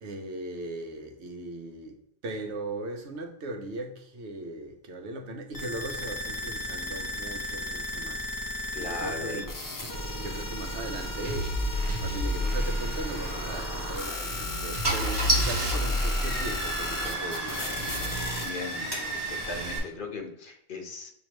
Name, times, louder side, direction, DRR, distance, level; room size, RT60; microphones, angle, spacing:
voice 1, 0.0-2.0 2.2-8.2 8.8-9.4 10.2-17.6, right 2 dB, 85° right, 1.1 m, -38 dB
sound 1, 5.5-18.5, left 1 dB, 25° left, 0.6 m, -35 dB
voice 2, 8.7-9.4 18.4-21.1, left 3 dB, 50° left, 1.0 m, -38 dB
sound 2, 11.2-18.2, equal, 40° right, 0.8 m, -32 dB
Car / Engine starting, 13.7-13.9 14.5-14.6 14.8-19.8, right 1 dB, 20° right, 1.3 m, -31 dB
6.2 x 2.9 x 2.9 m
omnidirectional pair, 1.1 m